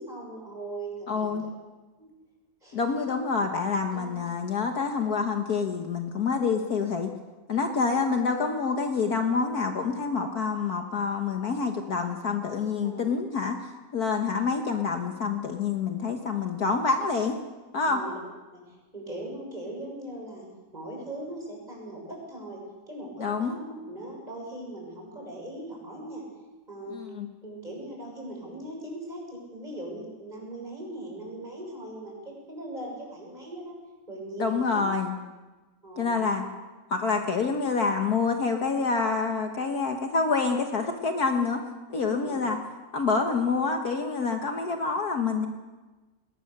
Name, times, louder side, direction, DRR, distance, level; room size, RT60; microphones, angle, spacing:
voice 1, 0.0-1.3 2.0-2.1 2.6-2.9 3.9-4.1 7.7-8.0 12.8-13.1 17.8-18.2 18.5-20.4 20.7-22.6 22.9-26.2 26.7-26.9 27.4-33.8 34.1-34.8 35.8-36.4 37.2-37.3 41.9-42.4, right 1 dB, 20° right, -2 dB, 6.7 m, -40 dB
voice 2, 1.1-1.4 2.7-7.1 7.5-13.6 13.9-17.4 17.7-18.0 23.2-23.6 26.9-27.3 34.4-35.1 36.0-36.4 36.9-41.6 41.9-42.6 42.9-45.5, left 4 dB, 55° left, 4 dB, 1.7 m, -27 dB
20.5 x 19.0 x 6.7 m, 1.2 s
omnidirectional pair, 2.0 m